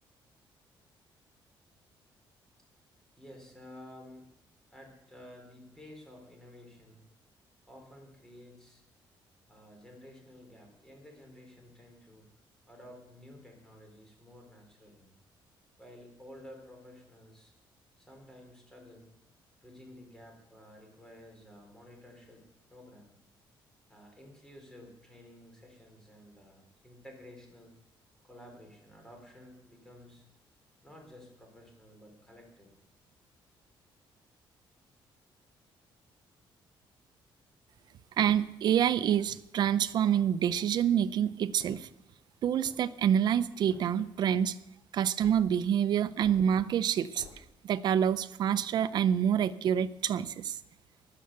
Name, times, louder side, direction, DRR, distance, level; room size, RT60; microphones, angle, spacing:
voice 1, 3.2-4.3 4.7-7.0 7.7-8.8 9.5-12.3 12.7-15.1 15.8-17.5 18.0-19.1 19.6-23.1 23.9-27.7 28.2-30.2 30.8-32.7 37.7-37.9, left 1 dB, 5° left, 2 dB, 4.0 m, -52 dB
voice 2, 38.2-41.9 42.4-44.6 44.9-47.3 47.6-50.5, right 9 dB, 55° right, 13 dB, 0.7 m, -27 dB
sound 1, 41.5-41.9 42.5-43.0 43.6-44.1 45.2-45.4 46.2-46.4 47.2-47.4, left 4 dB, 75° left, 3.7 m, -51 dB
15.5 x 11.5 x 6.8 m, 0.84 s
cardioid pair, 170°, 9 cm